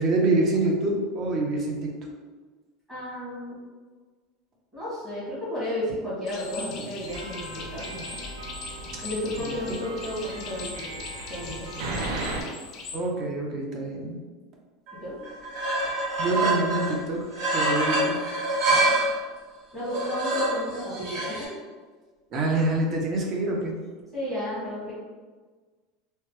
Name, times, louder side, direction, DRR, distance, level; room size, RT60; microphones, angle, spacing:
voice 1, 0.0-1.9 6.8-6.9 12.9-14.2 15.8-18.2 22.3-23.8, right 2 dB, 30° right, 0 dB, 0.5 m, -26 dB
voice 2, 2.9-3.6 4.7-8.2 9.0-10.9 11.3-12.0 15.0-15.2 18.7-19.1 19.7-21.6 24.1-24.9, left 1 dB, 15° right, -11 dB, 1.3 m, -33 dB
sound 1, 6.3-13.0, left 4 dB, 35° left, 0.4 m, -41 dB
sound 2, 7.1-12.4, right 2 dB, 80° right, 0.5 m, -36 dB
sound 3, 14.9-15.0 15.2-17.0 17.3-19.1 19.8-21.4, right 2 dB, 55° right, 1.2 m, -26 dB
3.0 x 2.1 x 3.0 m, 1.4 s
supercardioid pair, 170°, 0 cm